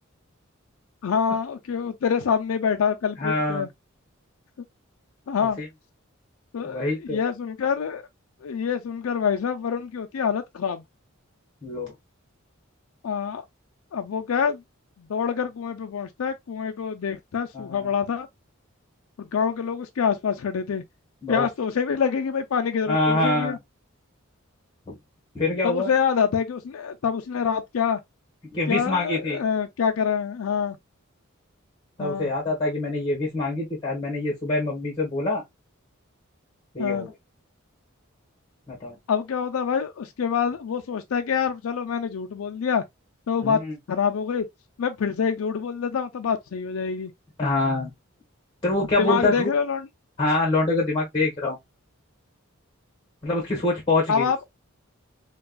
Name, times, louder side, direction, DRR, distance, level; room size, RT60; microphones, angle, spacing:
voice 1, 1.0-3.7 5.3-5.6 6.5-8.0 8.4-10.8 13.0-13.4 13.9-14.6 15.0-18.3 19.2-20.8 21.3-23.6 25.6-28.0 28.7-30.8 32.0-32.3 36.8-37.1 39.1-42.8 43.3-43.6 43.9-44.4 44.8-47.1 49.0-49.9 54.1-54.4, left 6 dB, 80° left, 0.4 m, -26 dB
voice 2, 3.2-3.7 5.6-5.7 6.6-7.2 11.6-11.9 17.5-17.9 21.2-21.4 22.9-23.5 24.9-25.0 25.3-25.9 28.5-29.4 32.0-35.4 36.7-37.1 38.7-39.0 43.4-43.7 47.4-47.9 48.6-49.5 50.2-51.6 53.2-54.3, left 2 dB, 25° left, 1.4 m, -25 dB
4.6 x 2.3 x 2.3 m
head